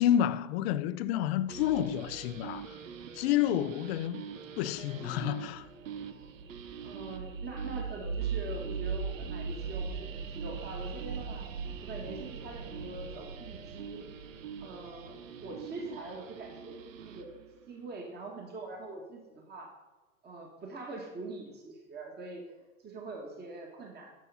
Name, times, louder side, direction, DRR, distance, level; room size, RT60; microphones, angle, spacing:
voice 1, 0.0-2.8 3.1-4.3 4.6-5.7, left 11 dB, 50° left, 0.6 m, -29 dB
sound 1, 1.2-16.4, right 3 dB, 45° right, 2.5 m, -56 dB
sound 2, 1.5-17.4, right 6 dB, 75° right, 0.9 m, -40 dB
voice 2, 6.8-11.5 11.8-14.0 14.6-17.4 17.7-19.7 20.2-22.4 22.8-24.1, right 2 dB, 25° right, 1.8 m, -43 dB
10.0 x 5.8 x 5.7 m
hypercardioid pair, 100°, 39 cm